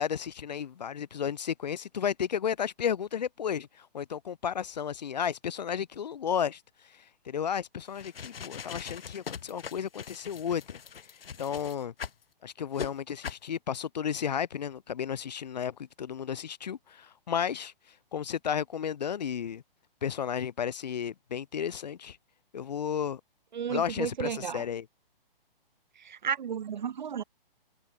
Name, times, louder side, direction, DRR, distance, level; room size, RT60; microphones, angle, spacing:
voice 1, 0.0-6.6 6.9-10.8 11.4-11.9 12.4-17.7 18.1-19.6 20.0-22.2 22.5-23.2 23.7-24.8, left 8 dB, 45° left, 0.8 m, -33 dB
sound 1, 7.9-12.2 12.7-12.9 13.2-13.5, left 7 dB, 70° left, 1.6 m, -41 dB
voice 2, 23.5-24.6 26.0-27.2, right 8 dB, 50° right, 0.5 m, -33 dB
hypercardioid pair, 170°, 30 cm